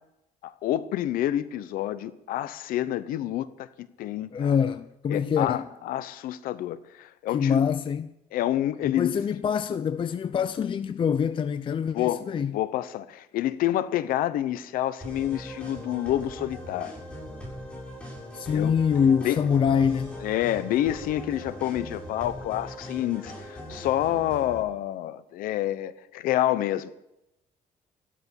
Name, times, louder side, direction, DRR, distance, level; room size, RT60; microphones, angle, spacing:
voice 1, 0.4-4.5 5.1-7.6 8.3-9.2 11.9-17.0 18.4-18.7 19.2-19.4 20.2-26.9, left 13 dB, 90° left, 0.9 m, -28 dB
voice 2, 4.3-5.7 7.3-8.1 8.8-12.6 18.3-20.2, left 7 dB, 35° left, 0.6 m, -25 dB
sound 1, 15.0-24.6, equal, 5° left, 7.7 m, -40 dB
15.0 x 12.5 x 7.1 m
cardioid pair, 125°, 14 cm